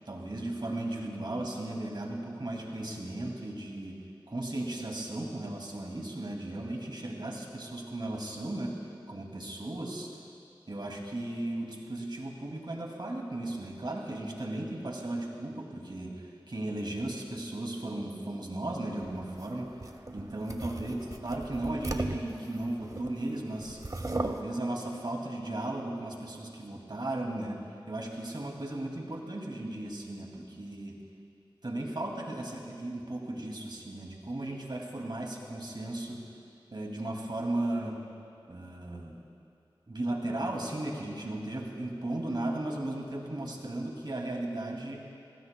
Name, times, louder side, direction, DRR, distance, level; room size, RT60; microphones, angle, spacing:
voice 1, 0.1-4.0 4.3-8.8 9.1-10.1 10.7-19.7 20.1-23.8 24.2-31.0 31.6-36.3 36.7-38.0 38.5-39.2 39.9-45.1, right 1 dB, 60° right, 0 dB, 2.3 m, -36 dB
sound 1, 19.0-23.3 23.6-24.4, right 2 dB, 45° right, 0.9 m, -37 dB
28.5 x 16.0 x 2.2 m, 2.6 s
wide cardioid pair, 40°, 9 cm